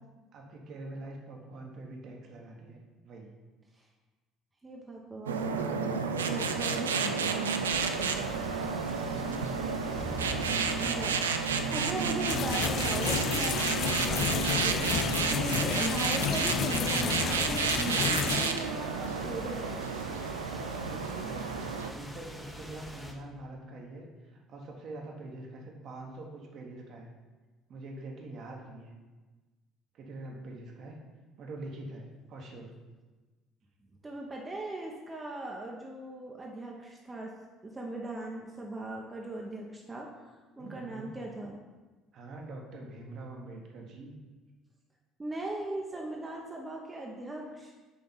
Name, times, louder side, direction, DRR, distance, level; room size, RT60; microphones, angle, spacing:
voice 1, 0.3-3.4 13.6-14.0 20.7-21.5 21.9-27.1 27.7-28.9 29.9-31.1 31.4-32.7 40.6-41.1 42.1-44.1, right 2 dB, 50° right, 0 dB, 1.0 m, -45 dB
voice 2, 4.6-8.5 10.8-11.2 11.7-19.9 34.0-37.3 37.6-41.6 45.2-47.7, right 2 dB, 20° right, -1 dB, 0.8 m, -39 dB
sound 1, 5.3-21.9, right 5 dB, 80° right, 0.3 m, -31 dB
sound 2, 7.7-23.1, left 1 dB, 5° left, 1.0 m, -42 dB
sound 3, 12.3-18.5, left 8 dB, 50° left, 0.3 m, -31 dB
5.9 x 3.8 x 5.5 m, 1.2 s
figure-of-eight pair, 55°, 0 cm